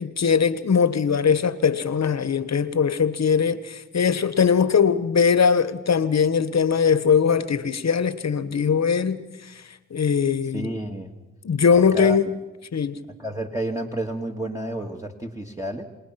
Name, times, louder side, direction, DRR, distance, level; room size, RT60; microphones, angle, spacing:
voice 1, 0.0-9.2 9.9-10.7 11.4-12.3 12.7-13.0, left 6 dB, 55° left, 1.4 m, -21 dB
voice 2, 10.5-11.1 11.7-12.2 13.2-15.8, right 1 dB, 10° right, 2.2 m, -30 dB
28.0 x 19.0 x 5.9 m
supercardioid pair, 50°, 32 cm